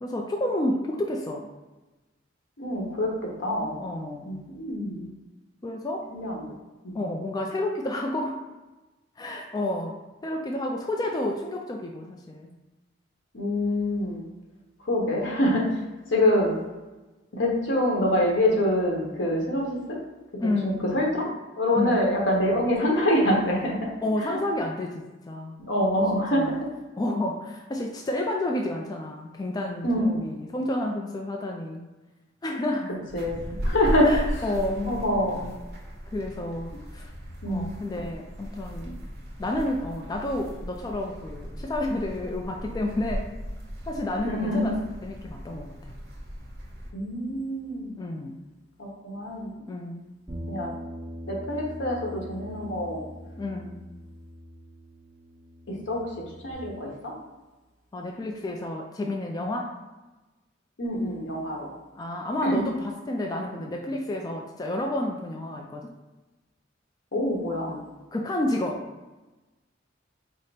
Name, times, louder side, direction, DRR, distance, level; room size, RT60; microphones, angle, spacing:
voice 1, 0.0-1.5 3.8-4.3 5.6-6.1 6.9-8.4 9.2-12.5 20.4-20.9 21.7-22.0 24.0-25.7 26.1-26.6 27.0-31.9 32.4-32.9 34.0-34.9 36.1-37.1 37.5-39.0 39.4-43.3 43.9-45.9 48.0-48.4 49.7-50.1 53.4-53.8 57.9-59.7 62.0-65.9 67.6-67.8 68.1-68.8, left 1 dB, 20° left, 1 dB, 0.3 m, -30 dB
voice 2, 2.6-3.1 3.4-3.8 4.2-5.1 6.1-6.4 6.8-7.0 13.3-14.2 14.9-15.8 16.1-16.5 17.3-20.0 20.6-21.3 21.6-23.9 24.2-24.4 25.6-26.6 29.8-30.0 33.1-34.2 34.8-35.5 37.4-37.7 44.2-44.7 46.9-47.9 48.8-49.5 50.5-50.7 51.3-53.0 55.7-56.1 56.4-57.1 60.8-61.7 62.4-62.6 67.1-67.7, left 1 dB, 80° left, -2 dB, 1.1 m, -25 dB
sound 1, 33.1-46.9, equal, 55° right, 1.0 m, -36 dB
Bass guitar, 50.3-56.5, equal, 15° right, 1.1 m, -41 dB
4.9 x 2.1 x 4.1 m, 1.1 s
head